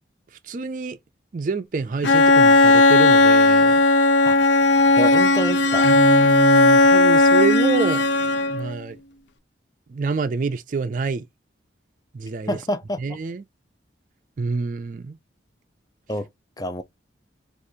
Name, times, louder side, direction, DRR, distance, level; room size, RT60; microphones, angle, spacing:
voice 1, 0.5-1.0 1.3-3.8 5.8-8.0 8.5-9.0 9.9-11.2 12.1-12.6 13.0-13.4 14.4-15.2, right 4 dB, 45° right, 0.4 m, -26 dB
Bowed string instrument, 2.0-8.7, left 2 dB, 75° left, 0.5 m, -16 dB
voice 2, 5.0-5.9 12.5-13.0 16.1-16.3 16.6-16.8, left 1 dB, 20° left, 0.5 m, -27 dB
4.7 x 2.4 x 2.7 m
head